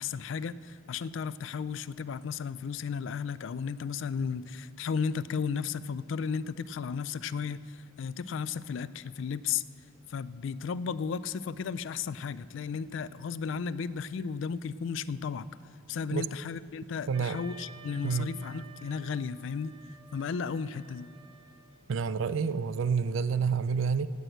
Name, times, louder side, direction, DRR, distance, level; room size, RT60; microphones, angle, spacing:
voice 1, 0.0-9.6 10.1-15.5 15.9-19.7 20.1-21.1, left 6 dB, 65° left, 17 dB, 0.3 m, -34 dB
Wind instrument woodwind instrument, 17.1-22.0, right 4 dB, 25° right, 0.8 m, -53 dB
voice 2, 17.1-17.4 18.0-18.3 21.9-24.1, right 6 dB, 70° right, 15 dB, 0.4 m, -28 dB
18.0 x 6.3 x 7.9 m, 2.4 s
head